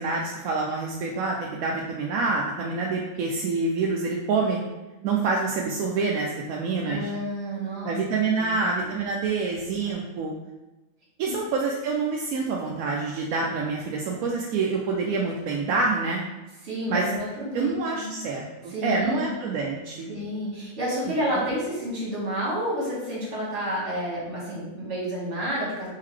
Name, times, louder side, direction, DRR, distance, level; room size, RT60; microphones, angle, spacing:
voice 1, 0.0-4.6 5.0-7.1 7.8-10.3 11.2-16.2 16.9-17.1 17.5-20.1 21.4-21.5, right 4 dB, 85° right, -1 dB, 1.0 m, -27 dB
voice 2, 6.8-8.0 8.3-9.0 11.2-11.3 16.6-18.2 18.7-19.3 20.1-25.9, equal, 60° right, -5 dB, 2.0 m, -30 dB
4.4 x 3.8 x 3.2 m, 1.1 s
omnidirectional pair, 1.4 m